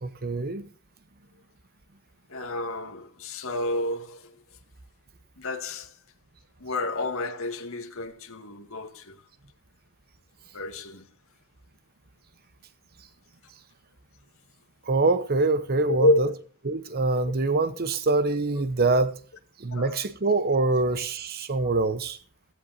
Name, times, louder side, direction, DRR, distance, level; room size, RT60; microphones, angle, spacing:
voice 1, 0.0-0.6 14.9-16.3 16.6-19.1 19.6-22.2, right 3 dB, 45° right, 0.9 m, -24 dB
voice 2, 2.3-4.3 5.4-5.9 6.6-9.1 10.5-11.0 15.8-16.3 19.7-20.0, left 2 dB, 65° left, 2.1 m, -29 dB
16.0 x 15.5 x 2.7 m
head